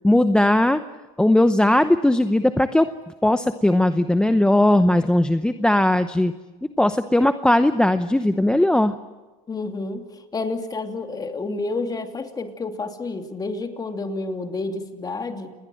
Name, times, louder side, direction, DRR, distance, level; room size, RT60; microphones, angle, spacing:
voice 1, 0.0-0.8 1.2-2.9 3.2-6.3 6.8-9.0, left 1 dB, 5° left, 10 dB, 0.8 m, -18 dB
voice 2, 9.5-10.0 10.3-15.5, left 3 dB, 20° left, 6 dB, 2.7 m, -29 dB
28.5 x 20.5 x 7.8 m, 1.2 s
supercardioid pair, 115°, 19 cm